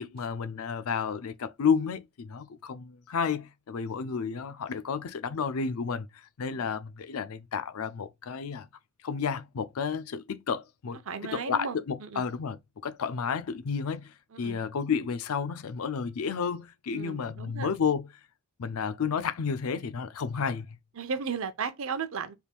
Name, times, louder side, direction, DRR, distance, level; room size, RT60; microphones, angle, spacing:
voice 1, 0.0-8.7 9.0-11.0 11.3-18.1 18.6-20.8, left 6 dB, 75° left, 0.5 m, -31 dB
voice 2, 11.0-12.3 14.3-14.6 16.9-17.7 21.0-22.3, right 5 dB, 65° right, 0.6 m, -35 dB
3.5 x 2.4 x 4.4 m
head